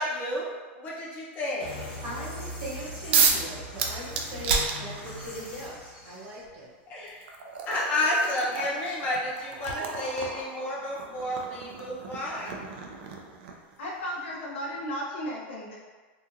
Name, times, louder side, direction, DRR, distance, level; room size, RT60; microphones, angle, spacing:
voice 1, 0.0-1.7 6.9-7.2 7.7-12.6, left 1 dB, 30° left, -6 dB, 0.7 m, -31 dB
sound 1, 1.6-6.4, left 1 dB, 60° left, 1.1 m, -40 dB
voice 2, 2.0-6.7, equal, 40° right, -7 dB, 1.0 m, -40 dB
sound 2, 3.1-3.5 3.8-5.3 6.5-6.6 7.1-13.7, right 5 dB, 65° right, 0.4 m, -30 dB
voice 3, 13.8-15.8, equal, 85° left, -4 dB, 0.8 m, -34 dB
2.8 x 2.4 x 2.6 m, 1.3 s
supercardioid pair, 165°, 6 cm